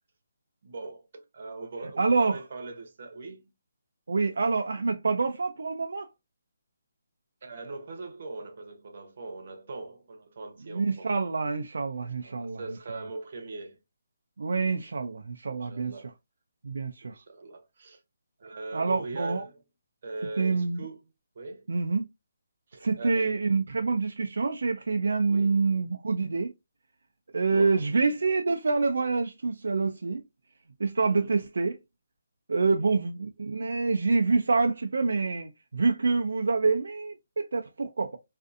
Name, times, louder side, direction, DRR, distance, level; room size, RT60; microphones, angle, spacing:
voice 1, 0.6-3.5 7.4-11.1 12.0-13.8 14.6-14.7 15.5-16.1 17.0-18.0 18.4-19.6 20.0-21.0 21.3-21.7 22.7-23.4 25.3-25.7 27.5-28.1 31.1-31.3 32.7-32.8, right 3 dB, 50° right, 0.7 m, -41 dB
voice 2, 2.0-2.4 4.1-6.1 10.7-12.6 14.4-16.0 16.6-17.2 18.7-19.4 20.4-20.9 21.7-22.0 22.8-26.5 27.3-30.2 30.8-31.8 32.5-38.2, right 4 dB, 75° right, 0.3 m, -26 dB
2.5 x 2.5 x 2.4 m
hypercardioid pair, 165°, 0 cm